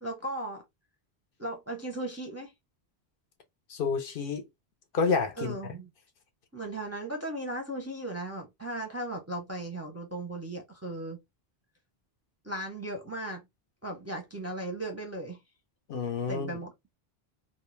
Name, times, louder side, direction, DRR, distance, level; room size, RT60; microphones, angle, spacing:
voice 1, 0.0-0.6 1.4-2.5 5.4-5.9 6.5-11.2 12.4-13.5 13.8-15.4 16.3-16.7, right 1 dB, 20° right, 0.5 m, -36 dB
voice 2, 3.7-4.4 4.9-5.6 15.9-16.5, left 5 dB, 65° left, 0.7 m, -29 dB
2.4 x 2.1 x 3.0 m
omnidirectional pair, 1.0 m